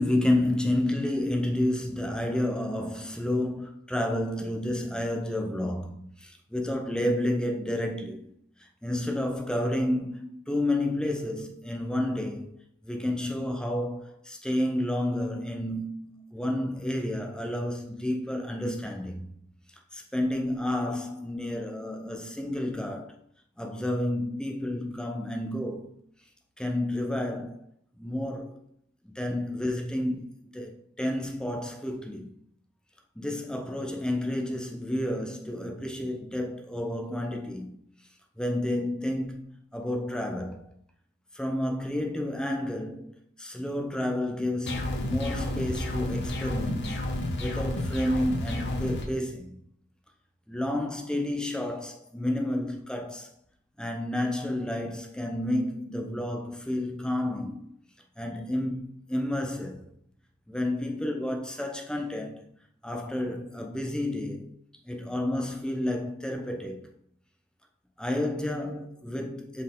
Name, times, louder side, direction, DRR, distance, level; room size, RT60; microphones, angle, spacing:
voice 1, 0.0-8.4 8.8-12.6 12.8-19.3 19.9-23.2 23.6-26.0 26.6-27.6 28.0-28.6 29.0-32.3 33.2-37.7 38.4-40.7 41.3-49.6 50.5-53.3 53.8-57.7 58.2-59.9 60.5-62.5 62.8-64.5 64.9-66.9 68.0-69.6, left 1 dB, 5° left, 0.7 m, -30 dB
sound 1, 44.7-49.0, left 1 dB, 55° left, 1.0 m, -31 dB
5.8 x 4.5 x 3.7 m
head